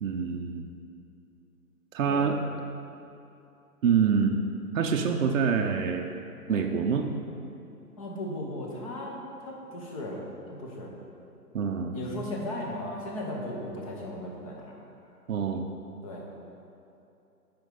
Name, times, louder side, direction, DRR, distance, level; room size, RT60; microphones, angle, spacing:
voice 1, 0.0-0.6 1.9-2.4 3.8-4.4 4.7-6.1 6.5-7.1 11.5-12.0 15.3-15.7, right 6 dB, 55° right, 3 dB, 0.6 m, -26 dB
voice 2, 8.0-10.9 11.9-14.7 16.0-16.3, left 1 dB, 20° left, -2 dB, 0.8 m, -36 dB
6.0 x 5.1 x 5.2 m, 2.8 s
hypercardioid pair, 145°, 49 cm